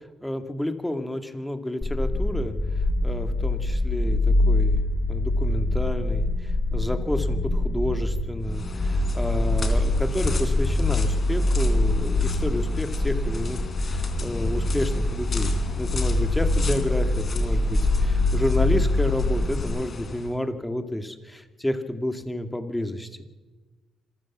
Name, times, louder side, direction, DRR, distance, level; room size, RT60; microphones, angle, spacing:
voice 1, 0.2-2.5 3.0-4.8 5.1-23.1, left 1 dB, 5° left, 7 dB, 2.2 m, -30 dB
sound 1, 1.8-19.6, left 2 dB, 25° left, 2.1 m, -24 dB
sound 2, 8.4-20.4, left 3 dB, 40° left, 3.5 m, -35 dB
26.0 x 14.5 x 7.4 m, 1.3 s
cardioid pair, 90°, 0 cm